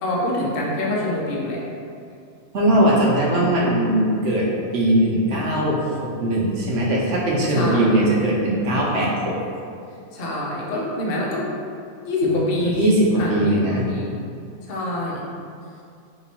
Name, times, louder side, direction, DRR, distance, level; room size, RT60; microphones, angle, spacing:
voice 1, 0.0-1.6 7.5-8.1 10.1-11.5 12.0-14.4 14.7-15.4, left 2 dB, 50° left, -4 dB, 0.8 m, -26 dB
voice 2, 2.5-4.5 4.7-9.4 12.2-13.8, right 1 dB, 60° right, -3 dB, 0.9 m, -20 dB
3.1 x 3.0 x 4.2 m, 2.4 s
omnidirectional pair, 1.5 m